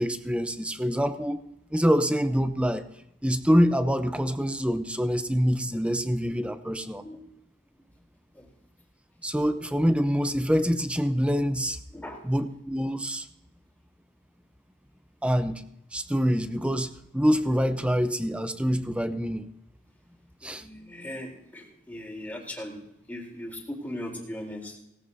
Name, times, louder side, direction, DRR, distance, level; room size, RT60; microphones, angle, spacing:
voice 1, 0.0-1.4 1.7-2.9 3.2-7.0 9.2-11.8 12.2-13.3 15.2-15.6 15.9-19.5 20.4-20.7, equal, 5° right, 10 dB, 0.7 m, -25 dB
voice 2, 11.9-12.2 20.4-22.8 23.1-24.8, left 1 dB, 10° left, -2 dB, 3.6 m, -39 dB
18.0 x 16.5 x 2.7 m, 0.84 s
head